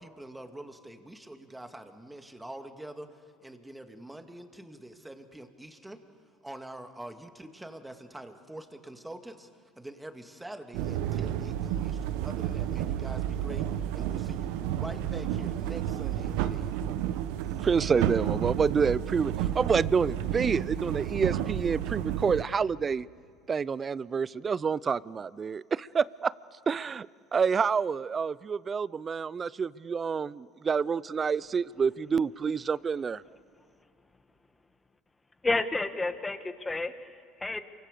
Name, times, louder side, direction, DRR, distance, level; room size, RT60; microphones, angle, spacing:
voice 1, 0.0-6.0 6.4-16.8, right 1 dB, 10° right, 6 dB, 2.4 m, -45 dB
sound 1, 10.7-22.4, right 11 dB, 75° right, 1.2 m, -31 dB
voice 2, 17.6-23.1 23.5-26.3 26.7-27.1 27.3-33.2, right 6 dB, 30° right, 21 dB, 0.6 m, -28 dB
voice 3, 35.4-37.6, left 2 dB, 15° left, 9 dB, 1.8 m, -31 dB
28.5 x 24.5 x 6.9 m, 2.1 s
hypercardioid pair, 85°, 0 cm